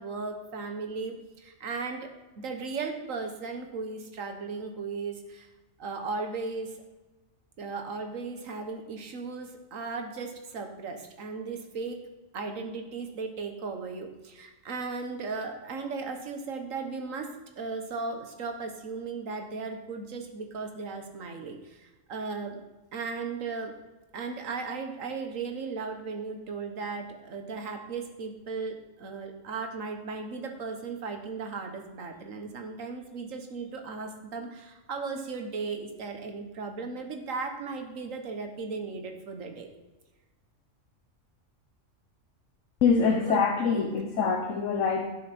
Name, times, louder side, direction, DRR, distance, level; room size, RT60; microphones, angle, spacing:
voice 1, 0.0-2.1 2.4-5.5 5.8-6.8 7.6-12.1 12.3-22.6 22.9-23.7 24.1-39.7 43.0-43.4 43.7-43.9, right 4 dB, 90° right, 4 dB, 1.5 m, -36 dB
voice 2, 42.8-45.1, left 5 dB, 70° left, 3 dB, 1.3 m, -24 dB
12.0 x 6.4 x 4.3 m, 1.1 s
omnidirectional pair, 1.3 m